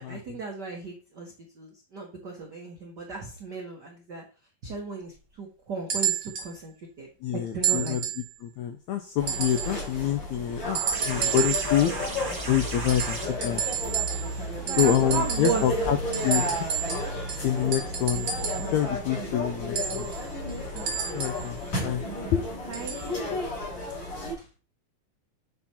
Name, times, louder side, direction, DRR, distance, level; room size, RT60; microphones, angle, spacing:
voice 1, 0.0-4.2 4.6-7.1 7.3-8.0 14.5-15.9 20.7-20.9 22.7-22.9 24.4-24.5, right 4 dB, 75° right, -1 dB, 0.9 m, -35 dB
sound 1, 5.9-6.5 7.6-8.3 9.3-9.8 10.7-11.8 12.9-14.4 14.7-15.7 16.1-18.7 19.7-21.5 22.7-23.1 24.0-24.1, right 8 dB, 45° right, 1.6 m, -30 dB
voice 2, 7.2-8.0 8.4-10.8 11.1-11.9 12.5-13.6 14.8-16.0 16.2-16.7 17.4-18.3 18.7-20.1 21.1-22.0 22.3-22.4, left 10 dB, 90° left, 6 dB, 1.6 m, -26 dB
sound 2, 9.2-24.3, left 1 dB, 60° left, 4.8 m, -33 dB
sound 3, 10.6-15.9 17.3-17.4, right 2 dB, 20° right, 1.5 m, -37 dB
8.6 x 3.6 x 4.2 m, 0.34 s
omnidirectional pair, 3.9 m